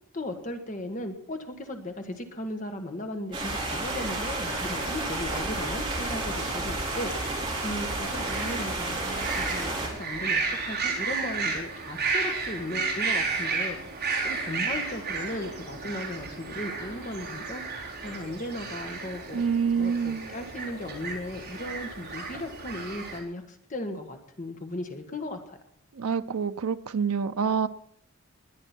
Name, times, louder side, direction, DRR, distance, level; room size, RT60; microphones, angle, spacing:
voice 1, 0.1-13.8 14.2-17.6 18.0-19.5 19.8-25.6, left 1 dB, 35° left, 5 dB, 1.5 m, -36 dB
sound 1, 3.3-9.9, right 2 dB, 25° right, 4.4 m, -31 dB
sound 2, 4.0-23.2, right 4 dB, 50° right, 3.7 m, -33 dB
voice 2, 19.3-20.3 26.0-27.7, right 6 dB, 90° right, 9 dB, 0.5 m, -27 dB
21.0 x 9.9 x 4.4 m, 0.67 s
head